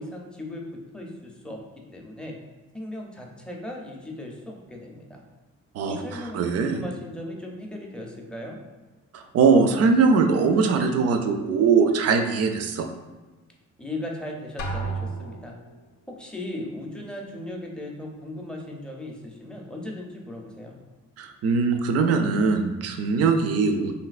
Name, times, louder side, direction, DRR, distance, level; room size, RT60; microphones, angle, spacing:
voice 1, 0.0-1.6 1.9-2.4 2.7-5.2 5.9-8.6 13.8-15.5 16.1-20.7, left 1 dB, 5° left, 0 dB, 0.5 m, -37 dB
voice 2, 5.7-6.8 9.1-12.9 21.2-23.9, right 4 dB, 55° right, 6 dB, 0.4 m, -21 dB
Drum, 14.6-15.8, right 3 dB, 85° left, 0.5 m, -32 dB
3.2 x 2.6 x 2.4 m, 1.2 s
cardioid pair, 90°, 30 cm